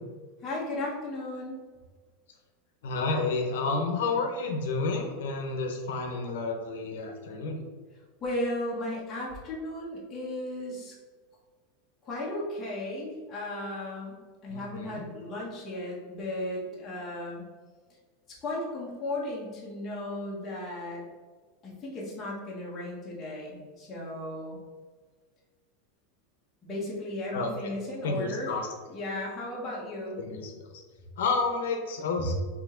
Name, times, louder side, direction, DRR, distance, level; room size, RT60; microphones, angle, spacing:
voice 1, 0.4-1.6 8.2-10.9 12.0-14.2 14.4-17.4 18.4-21.0 21.6-24.6 26.6-28.5 28.9-30.2, left 1 dB, 20° left, -5 dB, 1.1 m, -35 dB
voice 2, 2.8-7.6 14.5-15.0 27.3-27.7 28.0-28.7 30.2-30.8 31.2-32.3, left 3 dB, 80° left, 3 dB, 0.8 m, -30 dB
4.9 x 2.9 x 3.7 m, 1.4 s
supercardioid pair, 170°, 0 cm